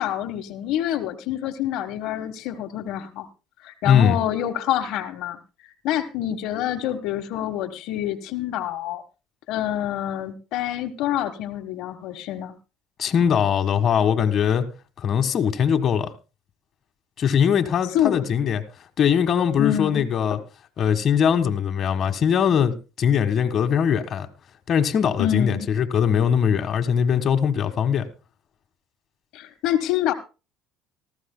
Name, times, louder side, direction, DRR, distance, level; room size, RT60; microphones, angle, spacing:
voice 1, 0.0-3.3 3.6-5.4 5.8-9.0 9.5-12.5 17.9-18.3 19.6-20.0 20.3-20.4 25.2-25.7 29.3-30.1, left 11 dB, 70° left, 1.3 m, -26 dB
voice 2, 3.8-4.2 13.0-14.7 15.0-16.1 17.2-18.6 19.0-20.4 20.8-24.3 24.7-28.1, left 8 dB, 45° left, 1.5 m, -21 dB
19.0 x 14.5 x 2.2 m
cardioid pair, 115°, 0 cm